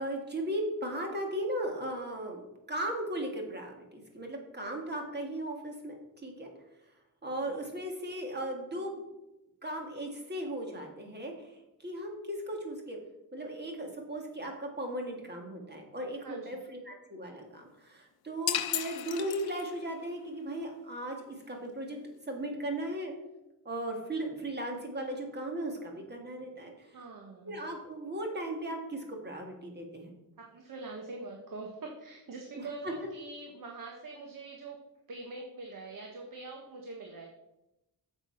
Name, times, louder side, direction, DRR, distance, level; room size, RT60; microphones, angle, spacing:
voice 1, 0.0-6.0 6.2-6.5 7.2-9.0 9.6-11.3 11.8-13.0 13.3-22.0 22.3-23.1 23.7-26.7 27.4-30.1 32.5-32.9, right 1 dB, 30° right, 2 dB, 1.9 m, -37 dB
voice 2, 16.2-16.6 26.9-27.6 30.4-34.8 35.1-37.3, right 3 dB, 60° right, 1 dB, 1.4 m, -44 dB
sound 1, 18.5-19.9, left 11 dB, 85° left, 0.6 m, -34 dB
7.9 x 7.1 x 5.7 m, 0.93 s
wide cardioid pair, 175°, 36 cm